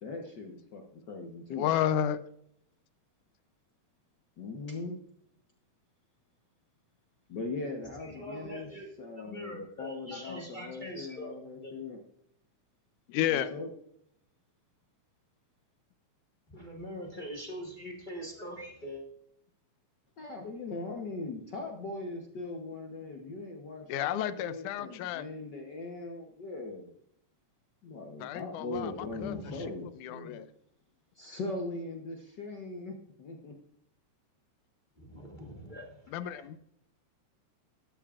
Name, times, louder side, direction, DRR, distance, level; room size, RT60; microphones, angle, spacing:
voice 1, 0.0-1.7 4.4-4.9 7.3-8.7 9.0-12.0 13.3-13.7 20.2-26.9 27.8-30.4 31.1-33.5, left 3 dB, 65° left, 2 dB, 1.0 m, -40 dB
voice 2, 1.5-2.2 13.1-13.5 23.9-25.2 28.2-29.7 30.0-30.5 36.1-36.6, left 10 dB, 90° left, 13 dB, 2.1 m, -32 dB
voice 3, 7.9-8.9 9.1-11.8 16.5-19.1 28.7-29.8 35.0-36.5, equal, 35° left, 0 dB, 0.7 m, -43 dB
14.0 x 12.0 x 2.5 m, 0.71 s
omnidirectional pair, 3.4 m